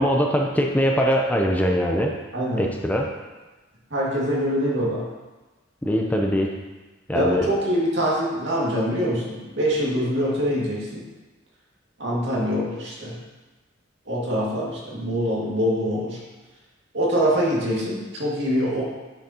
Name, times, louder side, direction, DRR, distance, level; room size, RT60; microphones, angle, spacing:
voice 1, 0.0-2.2 2.6-3.1 5.8-6.6 7.1-7.5, equal, 10° left, 1 dB, 0.5 m, -22 dB
voice 2, 2.3-2.6 3.9-5.0 7.1-11.0 12.0-13.1 14.1-16.2 16.9-18.8, equal, 65° right, -5 dB, 2.0 m, -24 dB
8.8 x 6.3 x 2.9 m, 1.2 s
head